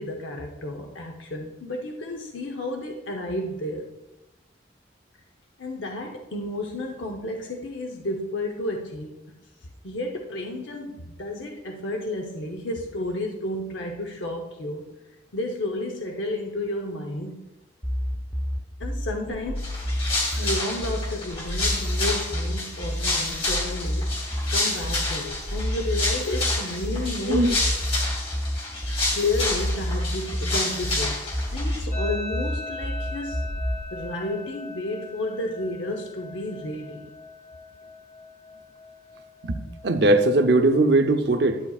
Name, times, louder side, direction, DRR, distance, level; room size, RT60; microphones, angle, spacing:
voice 1, 0.0-3.9 5.6-9.2 9.8-14.9 15.3-17.5 18.8-19.6 20.4-24.1 24.5-27.5 29.1-33.4 33.9-37.1, left 1 dB, 85° left, 2 dB, 0.8 m, -31 dB
sound 1, 17.8-33.8, equal, 10° left, 0.7 m, -29 dB
sound 2, 19.6-31.8, left 2 dB, 30° left, 2.1 m, -29 dB
sound 3, 31.9-41.0, left 3 dB, 50° left, 1.7 m, -40 dB
voice 2, 39.8-41.6, right 2 dB, 60° right, 7 dB, 0.7 m, -19 dB
11.0 x 8.5 x 2.4 m, 0.98 s
head